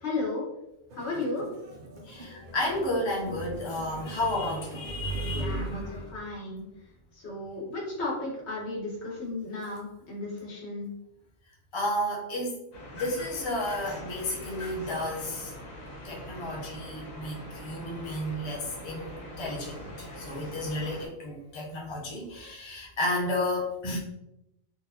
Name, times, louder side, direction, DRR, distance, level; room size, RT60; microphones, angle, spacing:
voice 1, 0.0-0.4 0.9-1.5 5.3-6.6 7.1-10.9, left 2 dB, 55° left, -4 dB, 1.3 m, -34 dB
sound 1, 0.9-6.1, equal, 70° right, 0.4 m, -48 dB
voice 2, 1.9-6.2 11.7-12.6 12.9-15.5 16.0-24.0, left 1 dB, 35° left, -3 dB, 0.5 m, -32 dB
sound 2, 12.7-21.1, equal, 80° left, 1.2 m, -42 dB
3.8 x 2.4 x 2.7 m, 0.87 s
omnidirectional pair, 1.4 m